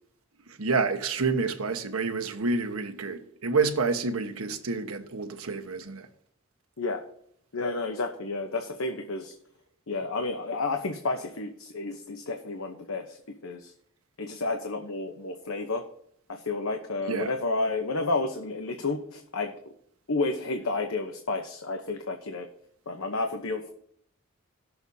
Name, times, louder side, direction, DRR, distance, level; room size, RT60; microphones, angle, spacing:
voice 1, 0.5-6.1 17.0-17.3, right 4 dB, 90° right, 1.2 m, -28 dB
voice 2, 7.5-9.3 9.9-13.7 14.2-15.8 16.3-19.5 20.1-22.5 22.9-23.7, left 3 dB, 75° left, 0.9 m, -31 dB
18.5 x 7.0 x 2.7 m
head